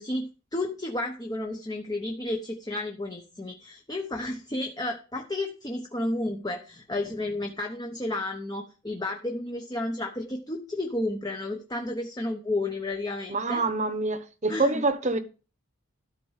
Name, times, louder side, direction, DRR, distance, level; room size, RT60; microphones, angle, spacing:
voice 1, 0.0-13.6 14.5-14.8, left 2 dB, 20° left, 0.9 m, -32 dB
voice 2, 13.3-15.2, right 3 dB, 35° right, 1.0 m, -26 dB
13.0 x 4.5 x 7.2 m
head